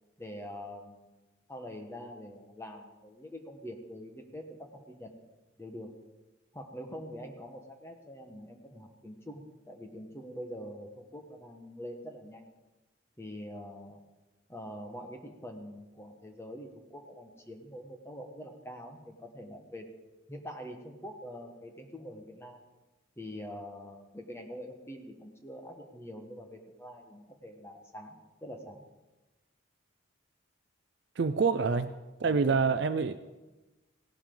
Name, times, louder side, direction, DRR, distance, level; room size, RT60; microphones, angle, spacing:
voice 1, 0.2-1.1 1.5-5.1 5.6-5.9 6.5-12.5 13.2-14.0 14.5-19.9 20.3-22.6 23.2-28.8 32.2-32.6, equal, 15° left, 3 dB, 1.2 m, -45 dB
voice 2, 31.2-31.9 32.2-33.2, right 5 dB, 55° right, 11 dB, 0.4 m, -26 dB
17.0 x 12.0 x 3.9 m, 1.1 s
head